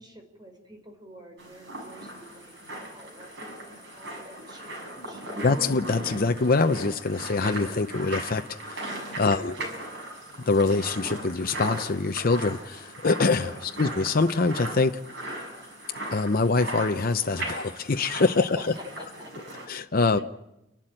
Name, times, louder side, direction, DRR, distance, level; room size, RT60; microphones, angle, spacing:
voice 1, 0.0-5.2 8.9-9.5 13.2-13.7 18.1-18.6 19.0-19.3 20.1-20.2, equal, 20° right, 2 dB, 5.1 m, -48 dB
sound 1, 1.4-19.7, right 1 dB, 65° right, 7.2 m, -38 dB
sound 2, 1.8-19.2, left 2 dB, 5° right, 6.8 m, -56 dB
voice 2, 5.4-8.4 8.7-8.9 9.2-9.6 10.5-15.0 16.1-18.4 19.7-20.2, left 3 dB, 50° left, 7 dB, 0.7 m, -24 dB
30.0 x 12.0 x 8.9 m, 0.90 s
head